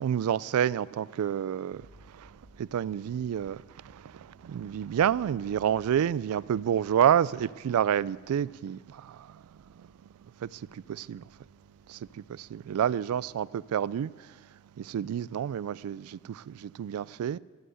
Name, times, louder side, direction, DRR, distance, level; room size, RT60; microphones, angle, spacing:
voice 1, 0.0-9.9 10.2-11.3 11.9-17.4, right 9 dB, 85° right, 0.3 m, -29 dB
sound 1, 1.7-13.3, equal, 10° right, 2.8 m, -60 dB
12.5 x 7.8 x 7.8 m
head